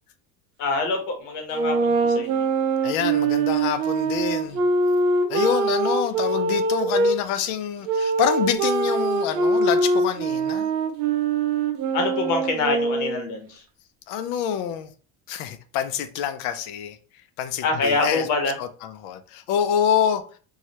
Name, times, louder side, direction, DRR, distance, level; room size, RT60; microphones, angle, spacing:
voice 1, 0.6-2.5 11.9-13.6 17.6-18.5, left 3 dB, 55° left, 0.9 m, -25 dB
sound 1, 1.5-7.2 7.9-13.4, right 3 dB, 45° right, 0.5 m, -23 dB
voice 2, 2.8-4.6 5.3-10.7 14.1-14.9 15.3-17.0 17.4-18.3 18.6-20.2, left 9 dB, 75° left, 0.5 m, -26 dB
3.0 x 2.3 x 2.8 m
cardioid pair, 170°, 35 cm